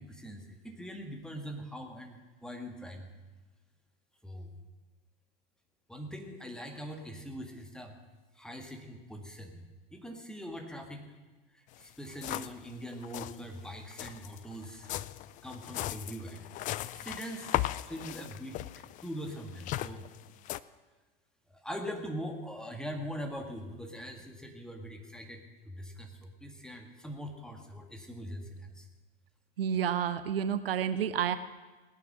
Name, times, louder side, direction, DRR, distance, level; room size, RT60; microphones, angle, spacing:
voice 1, 0.0-3.1 4.2-4.5 5.9-8.0 8.4-9.6 9.9-11.1 11.5-14.9 15.4-16.5 16.9-17.5 17.9-18.6 19.0-20.1 21.5-28.9, equal, ahead, 4 dB, 2.0 m, -42 dB
Marching off, 11.7-11.8 12.0-12.7 12.9-13.4 13.9-20.6, left 15 dB, 25° left, 0.4 m, -37 dB
voice 2, 29.6-31.4, right 8 dB, 70° right, 12 dB, 0.8 m, -30 dB
18.0 x 9.2 x 6.4 m, 1.2 s
figure-of-eight pair, 90°, 30 cm